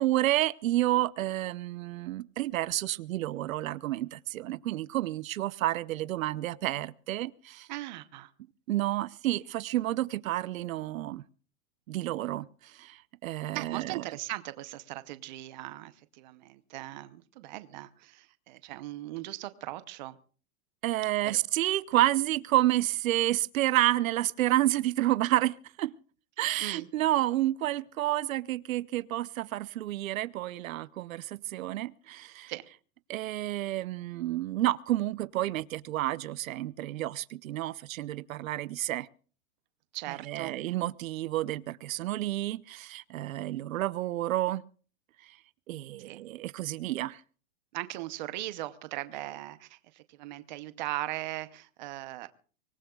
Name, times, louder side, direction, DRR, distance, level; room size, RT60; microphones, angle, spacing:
voice 1, 0.0-7.7 8.7-11.2 11.9-14.0 20.8-25.9 26.4-32.5 33.1-39.1 40.2-44.6 45.2-45.4 45.7-47.2, right 15 dB, 85° right, 0.8 m, -30 dB
voice 2, 7.7-8.3 13.5-20.2 21.2-21.3 26.6-26.9 32.5-32.6 39.9-40.5 46.0-46.2 47.7-52.3, right 16 dB, 35° right, 0.7 m, -39 dB
24.5 x 19.5 x 2.3 m
supercardioid pair, 175°, 40 cm